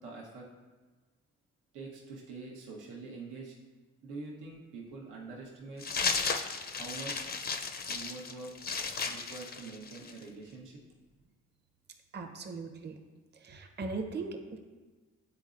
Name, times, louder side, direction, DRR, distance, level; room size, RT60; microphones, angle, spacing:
voice 1, 0.0-0.4 1.7-3.5 4.0-5.8 6.8-7.2 7.9-8.5 9.1-10.8, right 3 dB, 85° right, -3 dB, 1.0 m, -45 dB
sound 1, 5.8-10.2, left 5 dB, 35° left, 0.5 m, -34 dB
voice 2, 12.1-13.0 13.3-14.6, right 3 dB, 35° right, 5 dB, 0.7 m, -39 dB
9.6 x 4.0 x 2.5 m, 1.3 s
cardioid pair, 90°, 30 cm